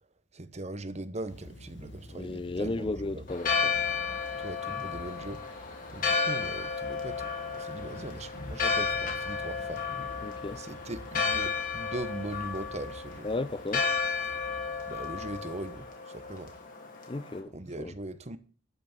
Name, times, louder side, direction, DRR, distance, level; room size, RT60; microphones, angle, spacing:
voice 1, 0.3-3.2 4.4-9.9 10.6-13.3 14.9-16.5 17.5-18.4, right 2 dB, 35° right, 1.0 m, -40 dB
Thunder / Rain, 1.3-15.7, left 1 dB, 70° left, 1.5 m, -49 dB
voice 2, 2.1-3.8 10.2-10.6 13.2-13.9 17.1-17.9, left 2 dB, 30° left, 0.5 m, -34 dB
Church bell, 3.3-17.4, left 5 dB, 45° left, 2.9 m, -33 dB
12.5 x 6.0 x 7.3 m
head